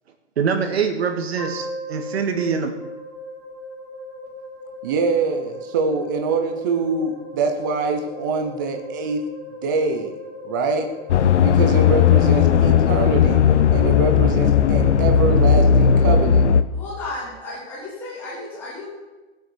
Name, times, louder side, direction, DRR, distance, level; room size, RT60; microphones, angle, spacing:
voice 1, 0.4-2.7, right 6 dB, 60° right, 5 dB, 2.1 m, -24 dB
sound 1, 1.4-13.6, left 1 dB, 30° left, 4.4 m, -38 dB
voice 2, 4.8-9.2 9.6-10.1 10.4-10.9 11.4-13.4 13.7-16.4, right 4 dB, 15° right, 4 dB, 0.7 m, -24 dB
sound 2, 11.1-16.6, left 7 dB, 80° left, 0.9 m, -16 dB
voice 3, 16.7-19.0, left 2 dB, 5° left, -9 dB, 3.4 m, -34 dB
16.5 x 8.2 x 6.2 m, 1.2 s
hypercardioid pair, 180°, 35 cm